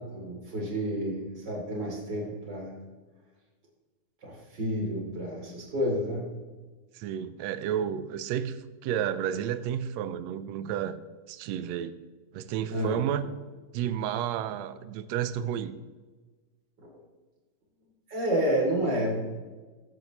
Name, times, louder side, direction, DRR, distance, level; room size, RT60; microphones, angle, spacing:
voice 1, 0.1-2.7 4.2-6.2 12.7-13.0 16.8-16.9 18.1-19.3, equal, 35° right, -1 dB, 3.3 m, -30 dB
voice 2, 6.9-11.0 11.3-12.0 12.3-13.3 13.7-15.8, right 10 dB, 75° right, 13 dB, 1.7 m, -31 dB
15.0 x 10.5 x 3.1 m, 1.3 s
omnidirectional pair, 3.5 m